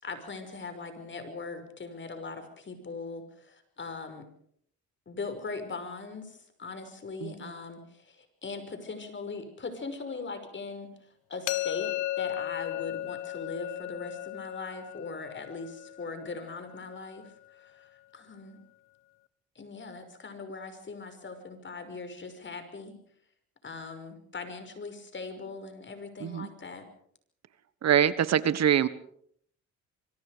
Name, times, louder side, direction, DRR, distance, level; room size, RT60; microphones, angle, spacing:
voice 1, 0.0-4.3 5.1-18.6 19.6-22.9 23.6-26.9, left 4 dB, 40° left, 8 dB, 5.8 m, -40 dB
sound 1, 11.5-17.3, left 15 dB, 85° left, 1.3 m, -36 dB
voice 2, 27.8-28.9, right 9 dB, 60° right, 15 dB, 1.4 m, -24 dB
25.5 x 24.5 x 5.1 m, 0.64 s
cardioid pair, 90°, 30 cm